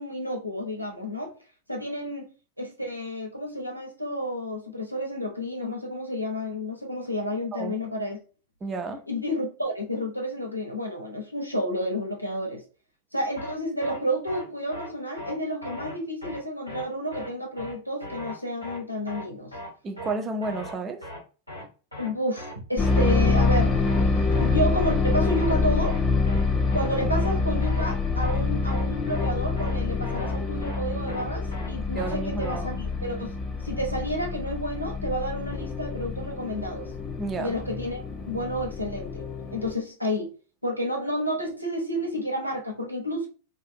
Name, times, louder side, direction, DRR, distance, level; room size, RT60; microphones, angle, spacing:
voice 1, 0.0-1.3 1.7-2.3 2.6-8.2 9.1-12.6 13.1-19.5 22.0-24.1 24.4-26.0 26.7-33.4 33.6-36.9 37.4-39.2 39.5-40.3 40.6-43.3, equal, 90° right, 0.8 m, -30 dB
voice 2, 8.6-9.0 19.8-21.0 32.0-32.7 37.2-37.6, right 3 dB, 20° right, 0.5 m, -31 dB
sound 1, 13.4-13.5 13.8-14.0 14.3-14.4 14.7-14.9 15.2-15.3 15.6-15.9 16.2-16.4 16.7-16.8 17.1-17.3 17.6-17.7 18.0-18.3 18.6-18.8 19.1-19.2 19.5-19.7 20.0-20.1 20.4-20.7 21.0-21.2 21.5-21.6 21.9-22.1 22.4-22.5 22.8-23.1 23.4-23.6 23.9-24.0 24.3-24.5 24.8-24.9 25.2-25.5 25.8-26.0 26.3-26.4 26.7-26.9 27.2-27.3 27.6-27.9 28.2-28.4 28.7-28.8 29.1-29.3 29.6-29.7 30.0-30.3 30.6-30.8 31.1-31.2 31.5-31.7 32.0-32.1 32.4-32.6, left 1 dB, 90° left, 1.4 m, -38 dB
sound 2, 22.8-39.7, left 4 dB, 30° left, 0.6 m, -26 dB
2.6 x 2.4 x 2.6 m
figure-of-eight pair, 90°, 0 cm